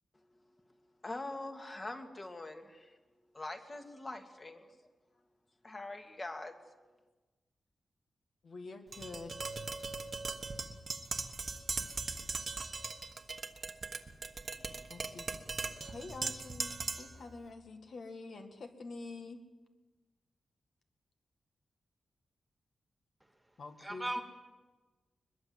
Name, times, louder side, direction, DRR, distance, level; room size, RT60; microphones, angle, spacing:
voice 1, 1.0-2.9 3.3-4.8 5.6-6.6, left 2 dB, 25° left, 5 dB, 2.2 m, -43 dB
voice 2, 8.4-9.5 14.9-15.2 15.8-19.4 23.6-24.2, left 3 dB, 55° left, 6 dB, 2.0 m, -47 dB
Tap, 8.9-17.2, right 4 dB, 35° right, 1.3 m, -39 dB
voice 3, 23.2-24.2, right 1 dB, 5° right, 6 dB, 2.1 m, -40 dB
22.5 x 21.5 x 7.9 m, 1.2 s
wide cardioid pair, 150°, 0 cm